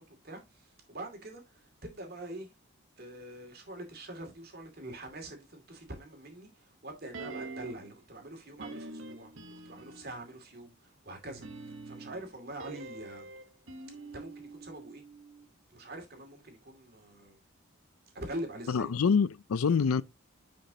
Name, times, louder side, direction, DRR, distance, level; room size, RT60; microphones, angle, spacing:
voice 1, 0.0-2.5 3.0-9.3 9.6-13.3 14.1-15.0 15.7-17.4 18.1-18.9, right 1 dB, 45° right, 2.4 m, -44 dB
sound 1, 7.1-8.0 8.6-10.2 11.2-15.5 15.7-15.8, right 3 dB, 70° right, 1.2 m, -45 dB
voice 2, 18.7-20.0, left 6 dB, 85° left, 0.5 m, -26 dB
10.0 x 5.1 x 2.8 m
head